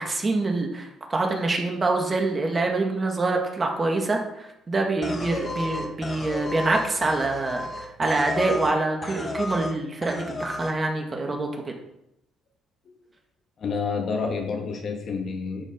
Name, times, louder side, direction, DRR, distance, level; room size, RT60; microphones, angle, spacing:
voice 1, 0.0-11.7, right 2 dB, 30° right, 2 dB, 2.1 m, -25 dB
sound 1, 5.0-8.8 9.0-9.7 10.0-10.7, left 2 dB, 30° left, 1.7 m, -33 dB
voice 2, 13.6-15.7, left 5 dB, 50° left, 2 dB, 2.1 m, -29 dB
11.0 x 5.3 x 5.3 m, 0.85 s
supercardioid pair, 80°, 0 cm